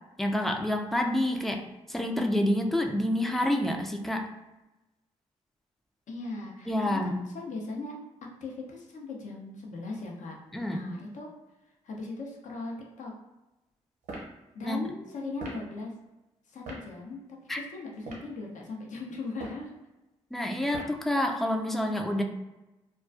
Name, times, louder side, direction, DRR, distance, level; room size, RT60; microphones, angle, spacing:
voice 1, 0.2-1.6 1.9-4.3 6.7-7.2 10.5-10.8 14.6-14.8 17.5-17.6 20.3-22.2, left 1 dB, ahead, 3 dB, 0.4 m, -28 dB
voice 2, 6.1-10.4 10.6-11.3 11.8-13.1 14.5-15.9 16.5-17.2 17.5-19.7, left 3 dB, 65° left, -1 dB, 0.7 m, -39 dB
sound 1, 14.0-14.3 15.4-15.6 16.7-16.8 17.9-18.3 19.3-19.7 20.7-21.0, right 2 dB, 70° right, 0.8 m, -40 dB
2.3 x 2.2 x 2.5 m, 1.0 s
hypercardioid pair, 45°, 14 cm